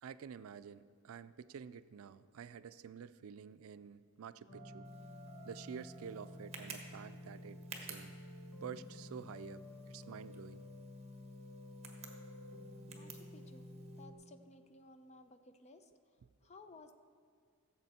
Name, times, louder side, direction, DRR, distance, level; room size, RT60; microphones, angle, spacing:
voice 1, 0.0-4.9 5.4-8.2 8.6-10.6, right 7 dB, 90° right, 14 dB, 0.4 m, -49 dB
sound 1, 4.5-14.1, left 1 dB, 70° left, 1.5 m, -51 dB
Tick, 4.8-14.0, right 5 dB, 30° right, 1.3 m, -55 dB
voice 2, 12.9-13.7 14.0-15.9 16.4-16.9, left 2 dB, 35° left, 9 dB, 0.6 m, -58 dB
16.0 x 7.2 x 4.2 m, 2.2 s
head